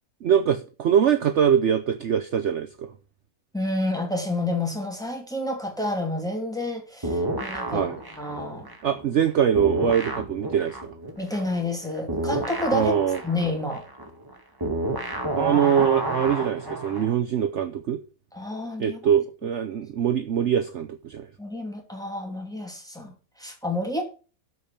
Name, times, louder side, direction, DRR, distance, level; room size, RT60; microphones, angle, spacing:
voice 1, 0.2-2.9 7.7-8.0 8.8-10.9 12.7-13.2 15.4-18.0 18.8-21.3, right 8 dB, 60° right, 0.9 m, -23 dB
voice 2, 3.5-7.9 8.2-8.7 11.2-12.9 13.2-13.8 18.3-19.0 21.4-24.0, left 2 dB, ahead, 2.6 m, -29 dB
sound 1, 7.0-9.3 9.5-17.1, right 1 dB, 15° right, 1.5 m, -30 dB
12.5 x 5.1 x 5.6 m
omnidirectional pair, 1.6 m